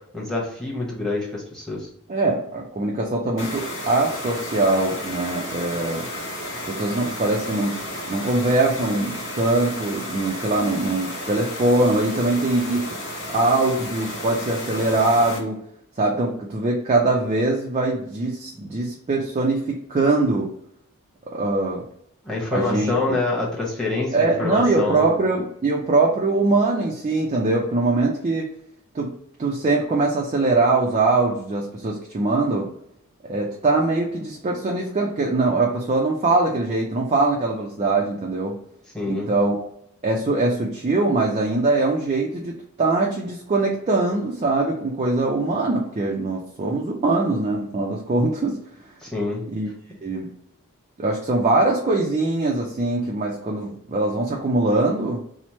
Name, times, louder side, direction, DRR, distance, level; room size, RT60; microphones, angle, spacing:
voice 1, 0.1-1.9 22.2-25.1 38.9-39.3 49.0-49.5 49.9-50.0, left 3 dB, ahead, -4 dB, 0.9 m, -26 dB
voice 2, 2.1-6.1 6.7-7.8 8.1-12.9 13.3-15.6 16.0-20.5 21.3-21.8 22.5-22.9 24.1-28.5 28.9-29.1 29.4-32.7 33.3-38.6 39.1-39.7 40.0-48.6 49.5-49.7 50.0-50.3 51.0-55.2, right 2 dB, 30° right, -1 dB, 0.4 m, -22 dB
sound 1, 3.4-15.4, left 1 dB, 60° left, 0.8 m, -33 dB
2.9 x 2.0 x 3.0 m, 0.71 s
head